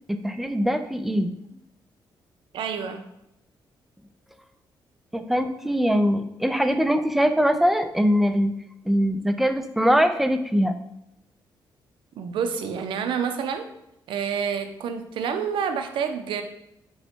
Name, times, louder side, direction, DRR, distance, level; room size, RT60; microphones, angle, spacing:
voice 1, 0.1-1.3 5.1-8.6 8.9-10.8, equal, ahead, 8 dB, 0.3 m, -22 dB
voice 2, 2.5-3.1 12.2-13.7 14.1-16.4, right 7 dB, 85° right, 8 dB, 0.5 m, -28 dB
5.3 x 2.1 x 4.4 m, 0.84 s
cardioid pair, 130°, 8 cm